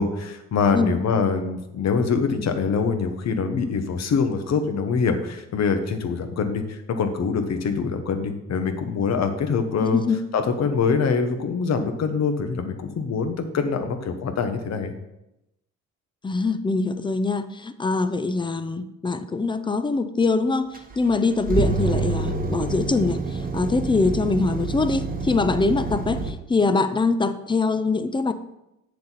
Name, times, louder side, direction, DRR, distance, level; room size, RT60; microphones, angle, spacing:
voice 1, 0.0-10.0 10.3-14.9, left 5 dB, 60° left, 7 dB, 1.2 m, -24 dB
voice 2, 9.8-10.2 16.2-28.3, left 3 dB, 15° left, 11 dB, 0.6 m, -23 dB
sound 1, 20.7-26.3, right 3 dB, 30° right, 1.1 m, -27 dB
8.0 x 6.8 x 4.1 m, 0.89 s
cardioid pair, 90°, 30 cm